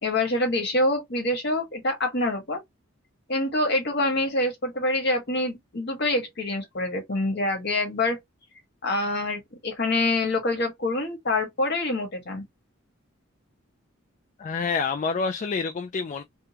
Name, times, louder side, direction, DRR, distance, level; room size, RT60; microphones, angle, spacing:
voice 1, 0.0-2.6 3.3-8.2 8.8-12.4, left 2 dB, 55° left, 1.4 m, -26 dB
voice 2, 14.4-16.2, left 5 dB, 35° left, 0.3 m, -27 dB
3.6 x 2.2 x 2.8 m
head